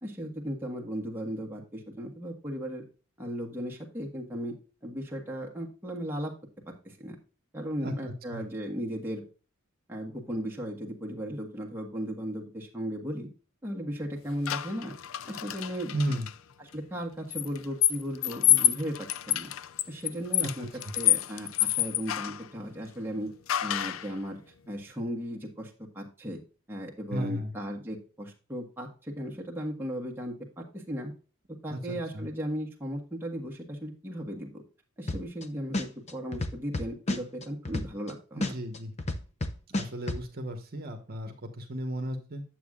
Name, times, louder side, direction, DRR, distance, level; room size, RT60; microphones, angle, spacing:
voice 1, 0.0-2.8 3.2-4.5 4.8-6.3 6.7-7.2 7.5-9.2 9.9-13.3 13.6-14.9 15.2-16.0 16.7-19.5 19.9-20.7 20.9-23.3 23.6-26.4 26.7-31.1 31.5-34.6 35.0-38.5, equal, 10° right, -2 dB, 1.5 m, -36 dB
voice 2, 7.8-8.4 15.9-16.3 20.4-20.5 20.8-20.9 27.1-27.5 31.7-32.3 38.3-38.9 39.7-42.4, equal, 45° right, 4 dB, 1.2 m, -34 dB
sound 1, 14.5-16.3 17.3-22.5 23.5-24.1, left 12 dB, 70° left, 0.4 m, -28 dB
sound 2, 35.1-35.4 35.7-38.1 38.4-40.2, left 2 dB, 30° left, 0.7 m, -30 dB
9.2 x 7.7 x 2.4 m, 0.36 s
head